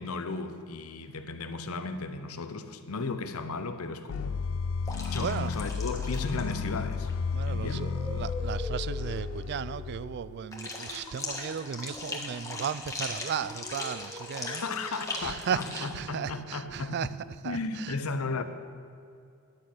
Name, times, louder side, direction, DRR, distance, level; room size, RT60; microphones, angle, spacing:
voice 1, 0.0-4.4 5.1-7.1 7.5-7.8 14.5-17.1 17.4-18.4, left 3 dB, 80° left, 0.8 m, -35 dB
sound 1, 4.1-10.3, left 5 dB, 65° left, 0.4 m, -33 dB
sound 2, 4.8-6.6 6.9-7.1 10.5-16.0, left 3 dB, 15° left, 1.4 m, -39 dB
voice 2, 5.2-5.5 7.3-14.6 15.2-17.1 17.4-17.9, right 7 dB, 50° right, 0.3 m, -35 dB
sound 3, 7.6-13.0 13.4-17.3, equal, 10° right, 1.0 m, -46 dB
11.5 x 6.2 x 8.5 m
head